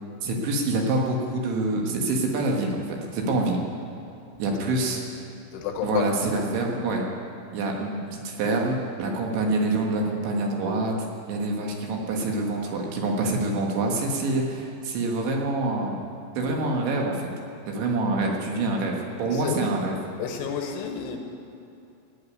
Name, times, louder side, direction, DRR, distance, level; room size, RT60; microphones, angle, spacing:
voice 1, 0.2-3.6 4.4-5.0 5.8-7.0 7.5-10.9 11.3-16.0 16.4-17.3 17.7-18.9 19.2-20.0, right 2 dB, 70° right, 0 dB, 3.6 m, -26 dB
voice 2, 5.5-6.1 19.3-19.6 20.2-21.2, left 8 dB, 75° left, 3 dB, 3.6 m, -30 dB
17.0 x 8.7 x 9.4 m, 2.6 s
omnidirectional pair, 5.8 m